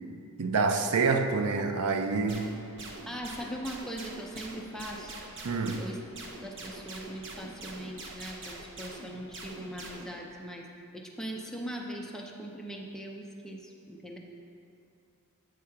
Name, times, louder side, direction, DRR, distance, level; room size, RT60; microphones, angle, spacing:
voice 1, 0.4-2.5 5.4-5.8, right 4 dB, 85° right, 7 dB, 0.5 m, -27 dB
sound 1, 2.3-10.1, right 2 dB, 60° right, 0.9 m, -44 dB
voice 2, 3.1-5.1 5.8-6.0 6.4-10.7 10.9-14.2, equal, ahead, -1 dB, 0.6 m, -40 dB
8.3 x 3.7 x 5.8 m, 2.6 s
head